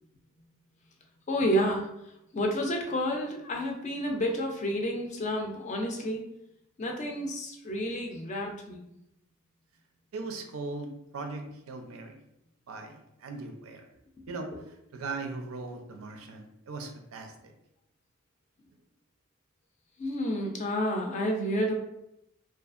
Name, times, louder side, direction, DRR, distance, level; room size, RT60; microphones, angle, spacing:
voice 1, 1.3-6.2 6.8-8.9 14.3-14.6 20.0-21.7, equal, 35° left, 2 dB, 0.4 m, -30 dB
voice 2, 10.1-12.2 12.7-13.9 14.3-14.6 14.9-17.5, right 3 dB, 85° right, 5 dB, 0.4 m, -39 dB
2.7 x 2.4 x 2.4 m, 0.82 s
head